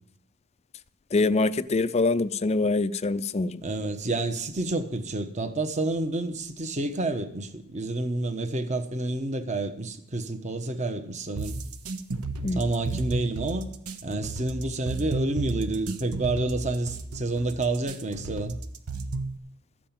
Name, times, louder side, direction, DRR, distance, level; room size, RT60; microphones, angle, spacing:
voice 1, 1.1-3.6 12.4-12.6, left 3 dB, 30° left, 0.4 m, -24 dB
voice 2, 3.6-11.6 12.5-13.7 14.0-18.6, right 2 dB, 30° right, 1.1 m, -29 dB
sound 1, 11.4-19.4, right 3 dB, 90° right, 1.1 m, -32 dB
13.0 x 7.6 x 8.8 m
head